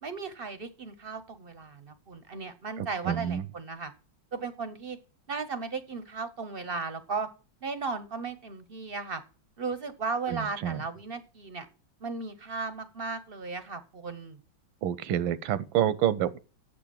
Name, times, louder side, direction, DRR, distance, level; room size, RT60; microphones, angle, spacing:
voice 1, 0.0-3.9 4.3-5.0 5.3-7.3 7.6-9.2 9.6-11.7 12.0-14.4, right 4 dB, 50° right, 0.6 m, -36 dB
voice 2, 2.8-3.4 10.3-10.8 14.8-16.4, right 10 dB, 85° right, 1.5 m, -28 dB
7.6 x 6.9 x 7.6 m
omnidirectional pair, 2.1 m